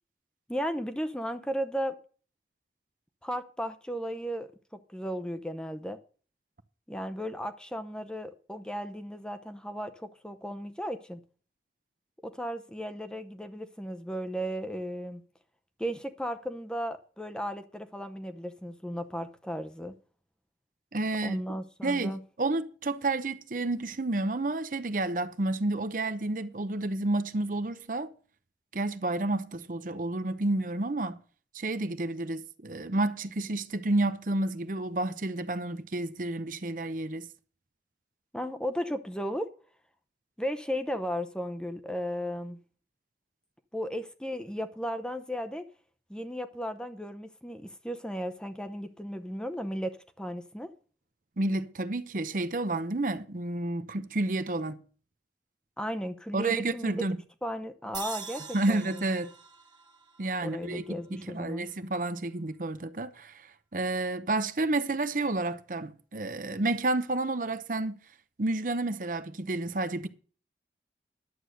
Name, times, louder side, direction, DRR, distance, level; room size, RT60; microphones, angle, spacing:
voice 1, 0.5-1.9 3.2-4.5 4.9-6.0 6.9-11.2 12.2-15.2 15.8-19.9 21.2-22.2 38.3-39.5 40.4-42.6 43.7-45.7 46.1-50.7 55.8-57.0 57.4-59.0 60.4-61.7, equal, 5° left, 0.7 m, -35 dB
voice 2, 20.9-21.4 21.8-28.1 28.7-31.2 31.5-37.3 51.4-54.8 56.3-57.2 58.5-59.3 60.2-68.0 68.4-70.1, right 2 dB, 50° right, 0.7 m, -30 dB
sound 1, 57.9-61.2, right 6 dB, 25° right, 1.0 m, -44 dB
11.5 x 8.0 x 6.5 m
head